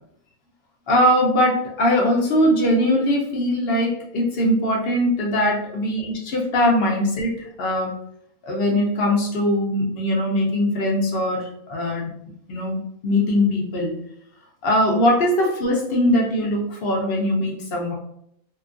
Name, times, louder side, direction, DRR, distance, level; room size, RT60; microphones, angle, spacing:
voice 1, 0.9-8.0 8.4-12.1 12.5-13.9 14.6-17.9, left 1 dB, 55° left, -1 dB, 0.7 m, -21 dB
2.9 x 2.4 x 2.4 m, 0.72 s
omnidirectional pair, 1.5 m